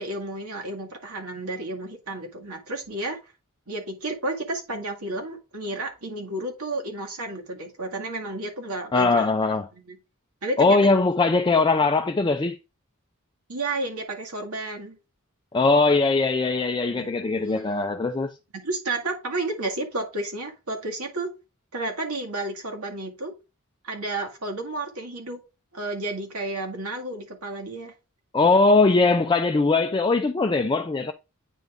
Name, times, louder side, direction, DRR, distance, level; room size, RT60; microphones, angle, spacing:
voice 1, 0.0-3.2 3.7-9.3 9.8-10.0 10.4-10.9 13.5-15.0 16.9-17.1 17.4-17.9 18.5-21.3 21.7-23.3 23.8-25.4 25.7-27.9, right 2 dB, 80° right, 2.0 m, -32 dB
voice 2, 8.9-9.7 10.6-12.6 15.5-18.3 28.3-31.1, left 3 dB, 20° left, 0.4 m, -20 dB
9.1 x 3.5 x 3.6 m
head